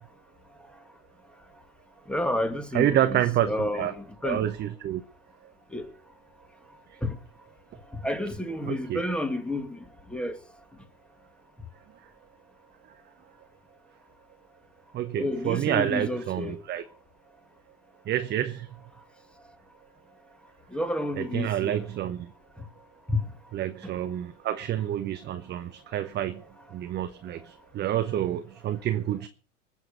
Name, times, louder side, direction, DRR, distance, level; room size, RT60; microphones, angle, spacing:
voice 1, 2.1-4.4 5.7-5.9 7.0-7.2 7.9-10.4 15.2-16.6 20.7-21.9 22.6-22.7 23.1-23.2 23.8-23.9, left 1 dB, ahead, 2.2 m, -30 dB
voice 2, 2.7-3.9 4.2-5.0 8.6-9.0 14.9-16.8 18.1-18.7 21.2-22.3 23.5-26.4 26.7-27.4 27.7-29.3, right 11 dB, 25° right, 0.9 m, -28 dB
20.0 x 7.4 x 6.7 m
hypercardioid pair, 95°, 40 cm